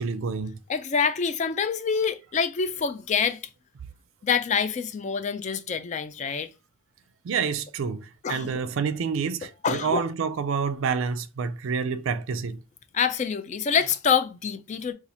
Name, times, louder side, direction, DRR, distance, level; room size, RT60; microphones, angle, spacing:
voice 1, 0.0-0.5 7.2-12.6, right 5 dB, 65° right, 0.4 m, -28 dB
voice 2, 0.7-3.4 4.2-6.5 8.2-8.6 9.6-10.0 12.9-14.9, left 6 dB, 35° left, 0.3 m, -26 dB
2.7 x 2.4 x 4.1 m
head